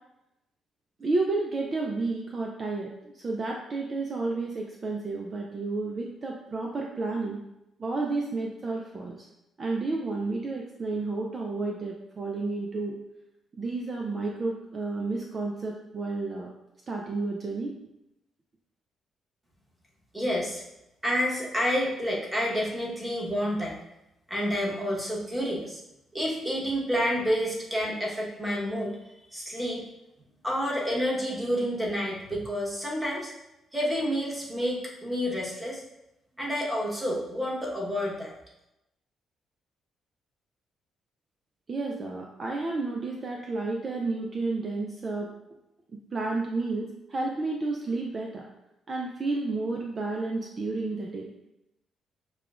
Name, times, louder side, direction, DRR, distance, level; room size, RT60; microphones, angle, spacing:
voice 1, 1.0-7.4 7.8-9.3 9.6-13.0 13.6-16.5 16.9-17.7 41.7-45.3 46.1-48.4 48.9-51.3, right 3 dB, 40° right, 0 dB, 0.5 m, -31 dB
voice 2, 20.1-20.6 21.0-23.8 24.3-25.8 26.1-29.8 30.4-33.3 33.7-35.8 36.4-38.3, equal, 10° right, -3 dB, 1.2 m, -29 dB
6.7 x 2.3 x 2.4 m, 0.88 s
cardioid pair, 90°, 0 cm